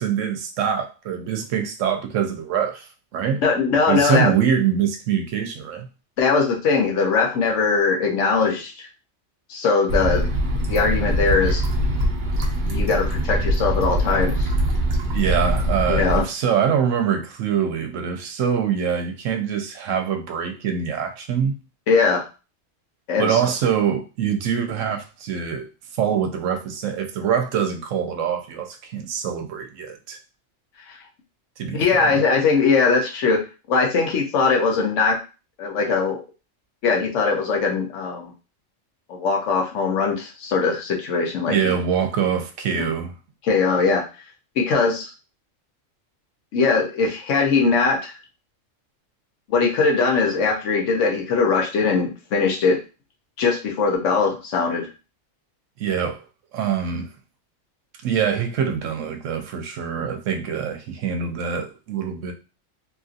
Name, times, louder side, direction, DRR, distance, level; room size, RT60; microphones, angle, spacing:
voice 1, 0.0-2.9 3.1-3.4 3.9-5.9 15.1-21.5 23.2-25.7 25.9-30.2 31.6-32.2 41.5-43.1 55.8-56.3 56.5-57.1 58.0-62.3, right 8 dB, 80° right, 0.9 m, -24 dB
voice 2, 3.4-4.3 6.2-8.9 9.5-10.3 10.7-11.7 12.6-14.5 15.9-16.2 21.9-22.2 23.1-23.5 31.7-33.4 33.7-35.2 35.6-36.2 36.8-38.3 39.1-41.7 43.4-44.0 44.6-45.1 46.5-48.2 49.5-52.8 53.4-54.9, left 4 dB, 70° left, 1.0 m, -20 dB
sound 1, 9.9-16.2, right 1 dB, 55° right, 0.5 m, -22 dB
2.8 x 2.6 x 2.4 m
omnidirectional pair, 1.3 m